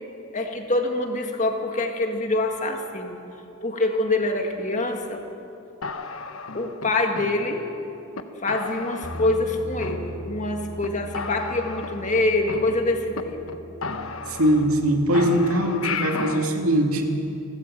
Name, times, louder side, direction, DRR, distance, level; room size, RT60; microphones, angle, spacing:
voice 1, 0.3-3.2 3.6-5.2 6.5-7.6 8.4-13.4, left 2 dB, 35° left, 3 dB, 1.8 m, -25 dB
sound 1, 5.8-7.8 8.1-8.2 8.5-9.5 9.8-10.5 10.8-10.9 11.1-13.2 13.5-13.6 13.8-14.9 15.1-16.5, left 4 dB, 70° left, 1.1 m, -34 dB
Bass guitar, 9.0-15.3, equal, 55° left, 1.9 m, -40 dB
voice 2, 14.3-17.0, right 1 dB, 80° right, 3 dB, 2.5 m, -21 dB
29.5 x 13.0 x 7.7 m, 2.8 s
head